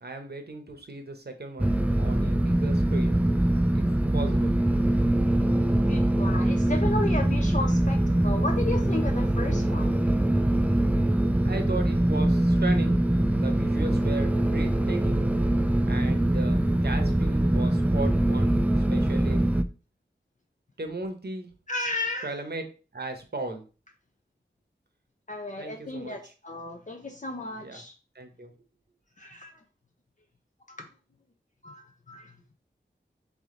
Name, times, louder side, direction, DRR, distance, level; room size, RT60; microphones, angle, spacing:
voice 1, 0.0-3.2 3.7-3.8 4.1-4.6 11.4-13.0 13.3-15.2 15.8-19.4 20.8-21.5 22.2-22.6 22.9-23.6 25.6-26.3 27.6-27.8 28.1-28.5, right 2 dB, 55° right, 6 dB, 0.9 m, -36 dB
sound 1, 1.6-19.6, right 1 dB, 10° right, 0.3 m, -23 dB
voice 2, 5.8-10.0 21.7-22.3 25.3-27.9 29.2-29.5 30.7-30.8 31.6-32.3, left 2 dB, 40° left, 3 dB, 0.6 m, -34 dB
3.6 x 3.6 x 3.7 m, 0.35 s
wide cardioid pair, 50°, 20 cm